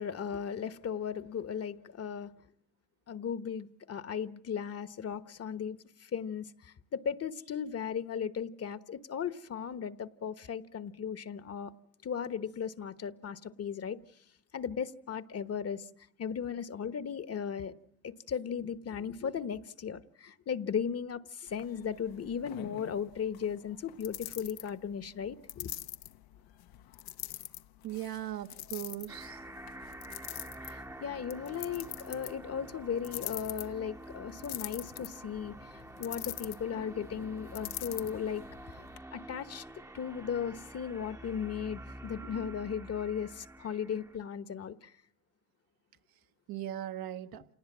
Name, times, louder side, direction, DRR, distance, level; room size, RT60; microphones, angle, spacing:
voice 1, 0.0-2.3 3.1-11.7 12.0-14.0 14.5-15.9 16.2-17.7 18.0-25.7 30.6-38.8 39.1-39.6 39.9-44.9, left 7 dB, 40° left, 1.2 m, -36 dB
sound 1, 21.5-39.0, left 14 dB, 65° left, 0.9 m, -45 dB
voice 2, 27.8-29.4 46.5-47.5, right 12 dB, 65° right, 1.2 m, -39 dB
sound 2, 29.1-44.2, right 1 dB, 5° right, 0.9 m, -48 dB
28.0 x 19.0 x 7.4 m
supercardioid pair, 85°, 39 cm